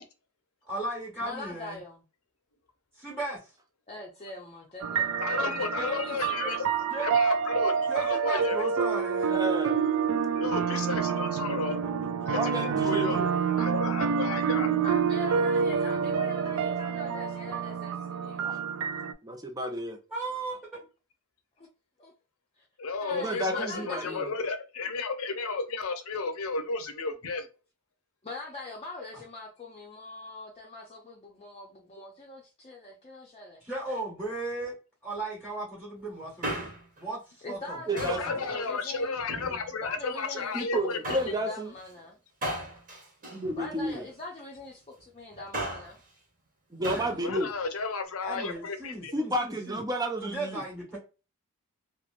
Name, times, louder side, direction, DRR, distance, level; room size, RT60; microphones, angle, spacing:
voice 1, 0.7-1.8 3.0-3.4 6.9-7.1 7.9-9.4 10.4-11.9 20.1-20.6 33.6-34.7 35.0-36.7 37.0-37.2 37.5-38.5 46.8-47.1 48.2-49.8 50.2-51.0, right 2 dB, ahead, 1.2 m, -36 dB
voice 2, 1.2-2.0 3.9-6.6 14.8-18.7 21.6-21.7 22.0-22.1 22.6-22.7 23.0-24.3 28.2-33.6 37.4-39.2 39.7-42.2 43.5-46.0, left 2 dB, 30° left, 0.6 m, -42 dB
sound 1, 4.8-19.1, right 6 dB, 65° right, 0.4 m, -28 dB
voice 3, 5.2-6.6 7.0-8.6 10.4-11.8 12.2-12.5 12.8-13.2 13.6-14.7 22.8-27.5 37.9-41.3 47.2-49.1, left 4 dB, 70° left, 0.7 m, -33 dB
voice 4, 9.3-9.8 12.3-13.3 18.4-18.6 19.2-20.0 23.1-24.3 37.9-38.4 40.5-41.7 43.3-44.1 46.7-47.5 49.1-50.6, right 1 dB, 15° right, 0.6 m, -31 dB
Male speech man speaking, 36.2-37.0 38.0-38.3 39.1-39.9 41.0-41.4 42.4-44.1 45.3-46.0 46.8-47.2 47.4-47.5, right 1 dB, 40° right, 1.2 m, -36 dB
2.9 x 2.5 x 2.4 m
head